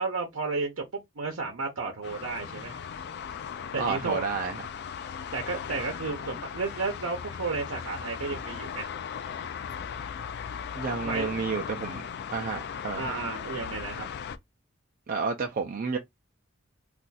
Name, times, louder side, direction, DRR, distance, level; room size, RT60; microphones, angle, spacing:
voice 1, 0.0-2.8 3.7-4.2 5.3-8.9 11.0-11.3 12.9-14.1, right 4 dB, 80° right, 0.7 m, -32 dB
sound 1, 2.0-14.4, left 7 dB, 55° left, 0.4 m, -37 dB
voice 2, 3.8-4.6 10.8-12.0 12.3-13.2 15.1-16.0, right 4 dB, 45° right, 0.4 m, -30 dB
2.5 x 2.3 x 3.9 m
head